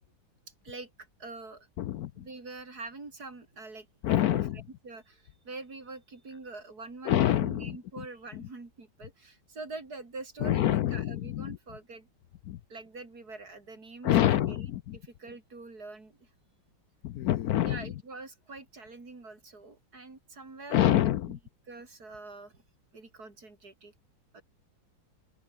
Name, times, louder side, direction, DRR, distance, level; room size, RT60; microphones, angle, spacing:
voice 1, 0.6-1.7 2.2-3.9 4.2-12.1 12.7-14.7 14.9-16.3 17.6-21.4 21.7-22.6 22.9-23.9 24.3-24.4, right 3 dB, 50° right, 4.5 m, -45 dB
voice 2, 1.8-2.2 4.0-4.6 7.1-7.7 10.4-11.6 12.5-12.6 14.0-15.0 17.0-17.8 20.7-21.4, left 12 dB, 70° left, 0.9 m, -26 dB
open air
omnidirectional pair, 2.1 m